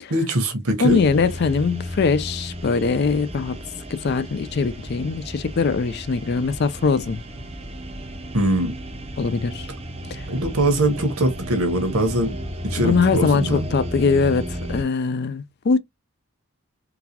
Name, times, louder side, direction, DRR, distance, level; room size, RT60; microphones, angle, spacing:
voice 1, 0.1-1.0 8.3-8.7 10.3-12.3 12.6-13.7, right 1 dB, 80° right, 1.1 m, -22 dB
voice 2, 0.8-3.6 3.9-7.2 9.2-9.7 10.1-10.3 12.8-15.8, left 4 dB, 45° left, 0.4 m, -22 dB
sound 1, 0.8-14.8, equal, 25° right, 0.6 m, -33 dB
3.9 x 2.3 x 2.8 m
head